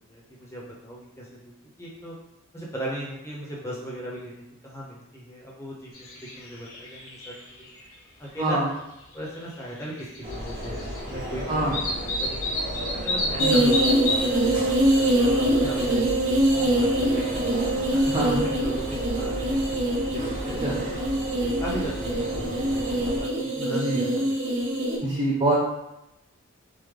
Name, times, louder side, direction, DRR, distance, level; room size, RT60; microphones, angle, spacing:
voice 1, 0.1-1.5 1.8-2.1 2.5-7.7 8.2-8.6 9.1-17.3 17.9-21.0 21.6-24.2 24.7-24.9, equal, 15° left, -5 dB, 0.7 m, -38 dB
sound 1, 5.9-6.4 6.7-7.8 9.4-9.5 10.0-11.0 11.2-11.3 11.7-14.2, left 1 dB, 85° left, 0.7 m, -28 dB
sound 2, 10.2-23.2, equal, 40° right, 0.9 m, -34 dB
sound 3, 13.4-25.0, right 1 dB, 65° right, 0.6 m, -24 dB
voice 2, 15.6-16.0 18.1-18.4 20.6-20.8 23.6-24.1 25.0-25.6, right 2 dB, 20° right, -5 dB, 0.4 m, -25 dB
3.5 x 2.1 x 3.2 m, 0.87 s
head